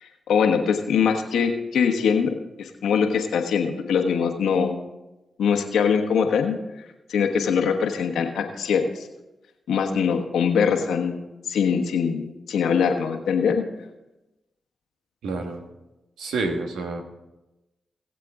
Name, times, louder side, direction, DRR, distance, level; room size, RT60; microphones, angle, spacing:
voice 1, 0.0-4.8 5.4-6.6 7.1-9.1 9.7-11.2 11.5-13.6, left 6 dB, 85° left, 4 dB, 1.2 m, -22 dB
voice 2, 15.2-15.6 16.2-17.0, right 3 dB, 85° right, 4 dB, 1.4 m, -28 dB
19.5 x 7.5 x 3.7 m, 1.0 s
supercardioid pair, 40°, 0 cm